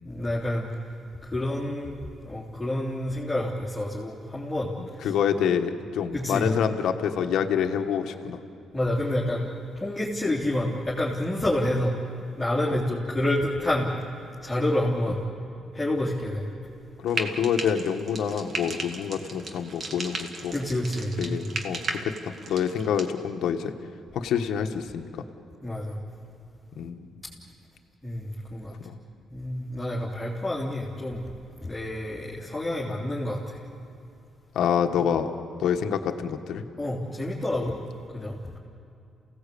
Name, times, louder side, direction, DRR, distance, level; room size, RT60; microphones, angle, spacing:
voice 1, 0.0-0.7 1.2-2.0 2.2-5.1 6.1-6.5 8.7-9.5 9.8-11.9 12.4-13.9 14.4-15.2 15.7-16.5 20.5-21.5 25.6-26.0 28.0-28.7 29.3-31.2 31.6-33.6 36.8-37.8 38.1-38.4, left 1 dB, 10° left, -5 dB, 3.1 m, -28 dB
voice 2, 4.8-8.4 17.0-20.5 21.2-23.7 24.1-25.1 26.8-27.0 28.8-28.9 34.5-35.3 35.6-36.7, left 8 dB, 75° left, 5 dB, 1.3 m, -27 dB
Frying (food), 17.1-23.1, right 3 dB, 45° right, 2.1 m, -36 dB
28.0 x 17.0 x 8.5 m, 2.6 s
cardioid pair, 90°, 0 cm